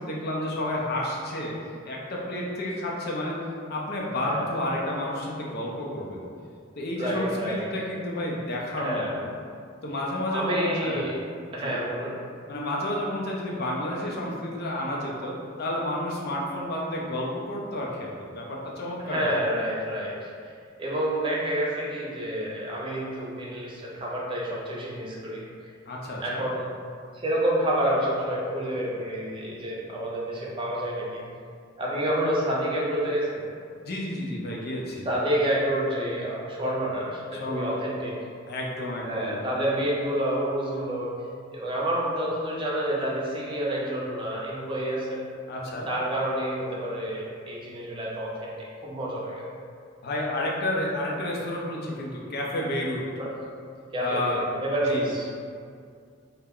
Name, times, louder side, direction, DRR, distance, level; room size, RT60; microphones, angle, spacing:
voice 1, 0.0-1.5 1.8-3.4 3.7-6.2 6.8-9.3 9.8-11.1 11.5-11.7 12.5-19.3 25.9-26.4 33.8-35.1 37.3-37.8 38.5-39.4 45.5-45.9 50.0-53.0 54.0-54.4 54.9-55.1, left 1 dB, 50° left, -3 dB, 0.5 m, -31 dB
voice 2, 7.0-7.7 8.8-9.1 10.3-11.2 11.5-12.2 19.0-20.5 20.8-25.4 26.2-26.7 27.1-31.2 31.8-33.4 35.1-38.1 39.0-41.1 41.5-45.2 45.9-48.5 48.8-49.5 53.2-53.3 53.9-55.3, right 1 dB, 25° right, -5 dB, 0.5 m, -28 dB
2.3 x 2.1 x 3.5 m, 2.3 s
head